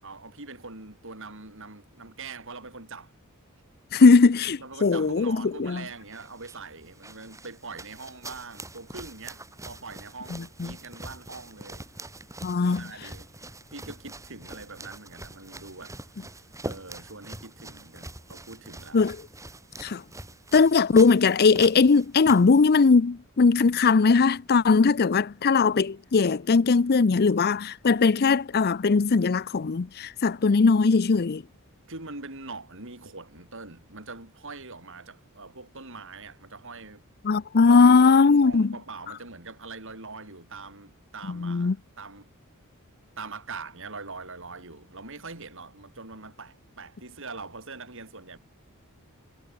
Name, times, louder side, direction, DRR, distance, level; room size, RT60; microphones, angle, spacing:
voice 1, 0.0-3.1 4.6-11.9 12.6-13.3 13.7-16.0 16.6-19.1 31.9-37.1 37.6-42.3 43.2-48.4, right 3 dB, 60° right, 6.8 m, -43 dB
voice 2, 3.9-5.8 10.3-10.7 12.4-12.8 18.9-19.2 19.8-20.0 20.5-31.4 37.2-38.7 41.3-41.8, left 4 dB, 45° left, 0.5 m, -20 dB
sound 1, 5.9-22.9, right 2 dB, 15° right, 6.6 m, -44 dB
head